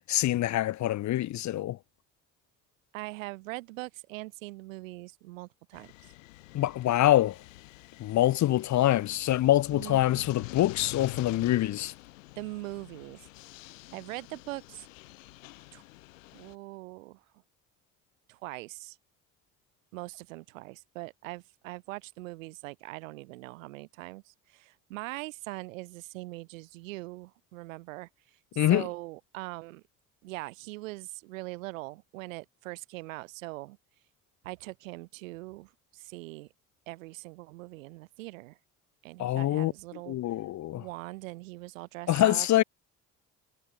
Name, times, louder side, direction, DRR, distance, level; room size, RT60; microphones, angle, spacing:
voice 1, 0.1-1.8 6.5-7.4 8.0-11.9 28.6-28.8 39.2-39.7 40.1-40.8 42.1-42.6, left 14 dB, 50° left, 0.6 m, -25 dB
voice 2, 2.9-5.9 9.7-10.0 12.4-13.3 13.9-14.9 15.7-15.8 16.3-17.2 18.3-19.0 19.9-28.1 28.7-29.8 30.2-33.8 34.4-36.5 36.9-38.6 39.0-40.2 40.8-42.6, right 21 dB, 85° right, 2.3 m, -41 dB
sound 1, 5.7-16.6, left 20 dB, 90° left, 2.4 m, -47 dB
hypercardioid pair, 50°, 38 cm